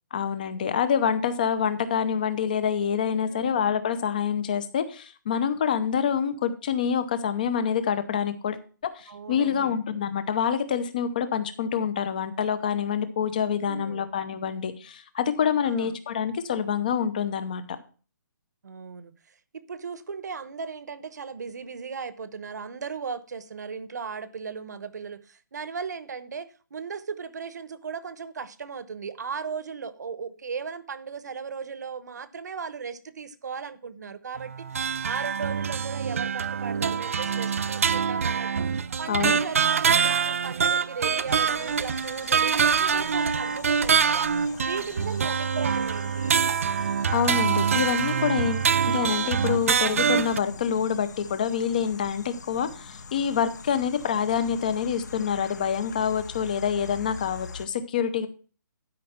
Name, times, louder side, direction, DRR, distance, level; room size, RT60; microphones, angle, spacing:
voice 1, 0.1-8.6 8.9-17.6 39.1-39.4 47.1-58.3, left 7 dB, 25° left, 0.7 m, -26 dB
voice 2, 3.2-3.6 9.1-9.7 13.6-14.1 15.6-16.0 18.6-38.7 39.0-44.3 44.7-46.4, right 5 dB, 60° right, 1.0 m, -37 dB
sound 1, 34.4-50.4, right 6 dB, 45° right, 0.4 m, -25 dB
sound 2, 41.3-57.7, left 5 dB, 60° left, 1.4 m, -44 dB
12.0 x 5.4 x 5.8 m
hypercardioid pair, 180°, 11 cm